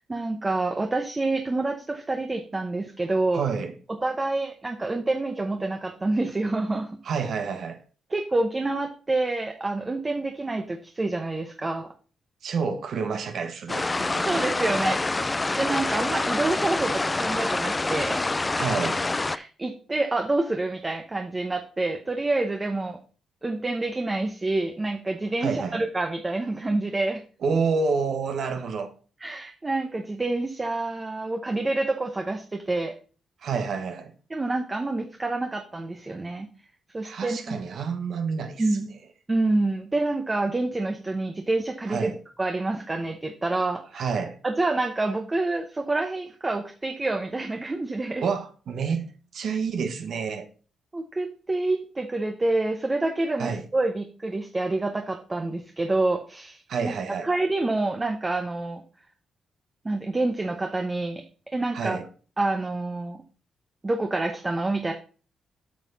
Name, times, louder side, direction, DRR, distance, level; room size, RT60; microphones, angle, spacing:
voice 1, 0.1-3.4 4.0-7.0 8.1-11.9 14.3-18.3 19.3-23.0 23.4-27.2 29.2-33.0 34.3-36.5 36.9-37.6 38.6-38.9 39.3-42.1 42.4-44.0 44.4-48.2 50.9-56.9 57.2-58.8 59.8-61.2 61.5-62.0 62.4-63.2 63.8-64.9, right 2 dB, 20° right, 0.9 m, -27 dB
voice 2, 3.3-3.7 7.0-7.8 12.4-14.4 18.5-19.0 25.4-25.8 27.4-28.9 33.4-34.1 37.0-38.8 41.9-42.2 43.9-44.4 48.2-50.5 53.4-53.6 56.7-57.3 61.7-62.1, right 5 dB, 65° right, 1.4 m, -29 dB
sound 1, 13.7-19.4, left 2 dB, 20° left, 0.4 m, -26 dB
8.8 x 5.7 x 4.1 m
cardioid pair, 95°, 0 cm